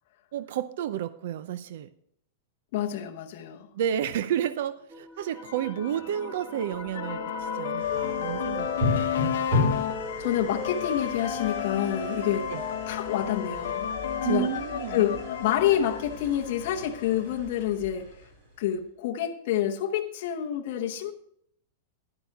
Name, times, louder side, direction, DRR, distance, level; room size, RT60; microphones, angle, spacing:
voice 1, 0.3-1.9 3.7-8.7 9.0-9.2 12.5-12.6 14.2-15.0, right 10 dB, 55° right, 0.5 m, -31 dB
voice 2, 2.7-3.7 9.6-9.9 10.2-12.5 12.9-13.9 14.3-14.5 14.9-18.1 18.6-21.1, left 11 dB, 45° left, 0.9 m, -28 dB
sound 1, 4.9-15.9, equal, ahead, 0.7 m, -41 dB
sound 2, 5.4-17.2, left 9 dB, 70° left, 0.9 m, -33 dB
sound 3, 7.8-18.9, left 2 dB, 35° right, 4.8 m, -35 dB
11.0 x 11.0 x 3.6 m
supercardioid pair, 175°, 0 cm